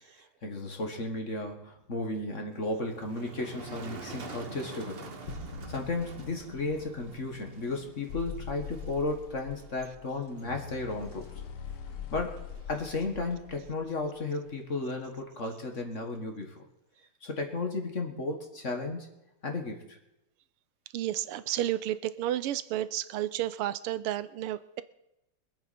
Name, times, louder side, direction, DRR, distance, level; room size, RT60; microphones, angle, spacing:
voice 1, 0.2-5.1 5.7-11.3 12.1-12.4 12.7-16.6 17.2-19.1 19.4-20.0, left 2 dB, 35° left, 3 dB, 1.9 m, -34 dB
sound 1, 1.5-2.3 5.2-7.9, left 2 dB, 55° left, 2.4 m, -46 dB
Motor vehicle (road), 2.5-15.2, right 3 dB, 40° right, 0.9 m, -48 dB
sound 2, 8.1-14.2, left 8 dB, 85° left, 1.8 m, -42 dB
voice 2, 20.9-24.8, right 13 dB, 85° right, 15 dB, 1.6 m, -31 dB
24.5 x 8.8 x 4.3 m, 0.88 s
omnidirectional pair, 2.4 m